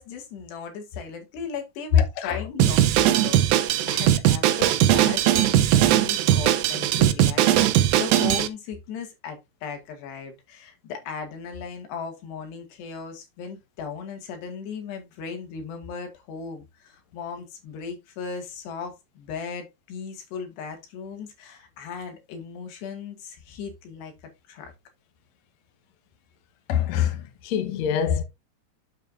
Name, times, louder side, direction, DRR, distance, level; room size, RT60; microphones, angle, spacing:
voice 1, 0.0-24.1 24.5-24.7, left 6 dB, 80° left, 4.2 m, -37 dB
Drum kit, 2.6-8.5, right 12 dB, 75° right, 2.2 m, -19 dB
voice 2, 26.7-28.2, left 9 dB, 60° left, 1.8 m, -25 dB
9.1 x 7.4 x 2.6 m
omnidirectional pair, 4.8 m